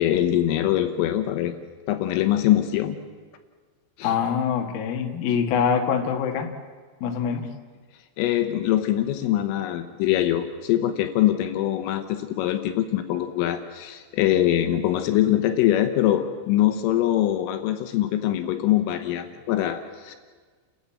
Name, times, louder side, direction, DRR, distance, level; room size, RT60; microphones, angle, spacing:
voice 1, 0.0-1.6 1.9-3.0 4.0-4.1 8.2-20.2, left 12 dB, 80° left, 8 dB, 3.6 m, -23 dB
voice 2, 4.0-6.5 7.0-7.5, left 7 dB, 60° left, 4 dB, 2.9 m, -24 dB
29.5 x 13.0 x 8.7 m, 1.5 s
omnidirectional pair, 5.9 m